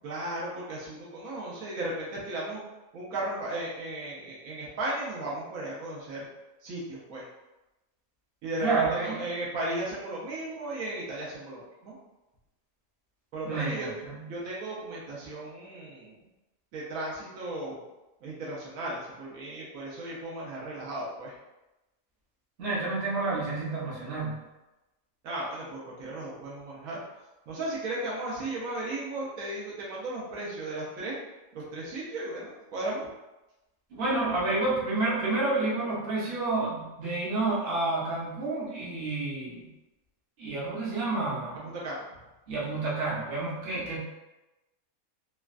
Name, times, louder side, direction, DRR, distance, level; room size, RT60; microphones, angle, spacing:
voice 1, 0.0-2.6 2.9-6.3 6.6-7.2 8.4-12.0 13.3-13.9 14.3-16.2 16.7-17.8 18.2-21.3 25.2-27.0 27.5-31.2 31.5-33.1 41.5-42.1 43.7-43.8, right 1 dB, 75° right, -5 dB, 1.1 m, -35 dB
voice 2, 8.6-9.3 13.4-14.2 22.6-24.4 33.9-39.7 40.4-41.7 42.5-44.0, right 3 dB, 50° right, -6 dB, 0.9 m, -29 dB
3.1 x 2.2 x 2.4 m, 1.0 s
omnidirectional pair, 1.5 m